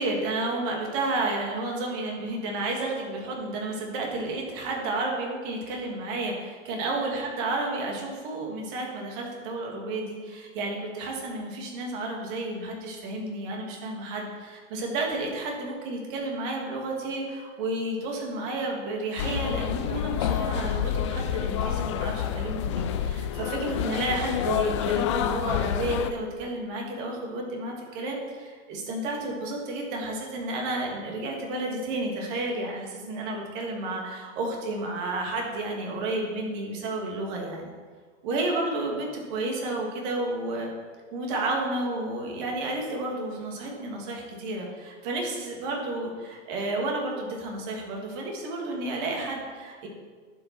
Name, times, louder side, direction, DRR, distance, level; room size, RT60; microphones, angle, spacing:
voice 1, 0.0-37.7 38.2-40.7 41.1-49.9, right 2 dB, 40° right, 0 dB, 2.8 m, -31 dB
sound 1, 19.2-26.1, left 9 dB, 25° left, 0.3 m, -28 dB
11.0 x 7.8 x 4.6 m, 1.5 s
hypercardioid pair, 130°, 38 cm